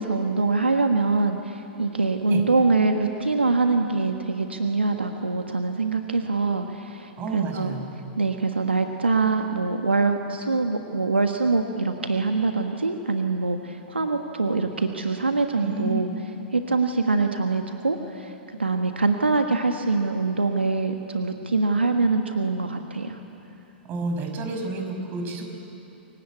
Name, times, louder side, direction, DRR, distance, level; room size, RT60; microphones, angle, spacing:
voice 1, 0.0-7.8 8.2-16.1 16.5-18.3 18.6-23.2, right 3 dB, 90° right, 5 dB, 1.6 m, -24 dB
voice 2, 7.2-7.9 15.6-16.2 23.8-25.4, right 2 dB, 35° right, 3 dB, 6.0 m, -30 dB
28.0 x 23.5 x 8.4 m, 2.9 s
figure-of-eight pair, 105°, 6 cm